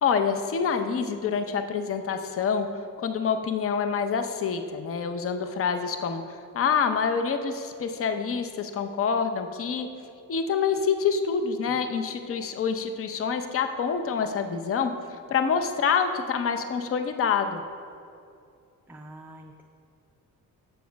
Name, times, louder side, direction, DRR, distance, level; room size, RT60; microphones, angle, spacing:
voice 1, 0.0-2.7 3.0-6.2 6.5-9.9 10.3-14.9 15.3-17.6, left 6 dB, 40° left, 7 dB, 0.6 m, -26 dB
voice 2, 18.9-19.6, right 1 dB, 5° right, 2 dB, 0.3 m, -46 dB
7.3 x 7.0 x 5.1 m, 2.5 s
cardioid pair, 130°, 35 cm